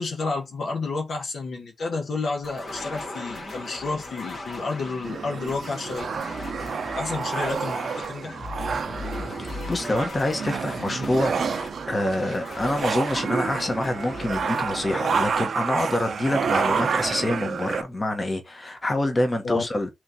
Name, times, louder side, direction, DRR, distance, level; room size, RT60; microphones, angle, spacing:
voice 1, 0.0-6.1 6.9-8.4 19.4-19.6, left 3 dB, 80° left, 1.2 m, -30 dB
sound 1, 2.4-16.3, left 2 dB, 60° left, 1.4 m, -38 dB
sound 2, 5.0-17.8, right 5 dB, 70° right, 0.5 m, -29 dB
voice 2, 9.4-11.4 11.9-19.9, left 1 dB, 35° left, 1.2 m, -26 dB
3.2 x 3.1 x 4.0 m
cardioid pair, 50°, 0 cm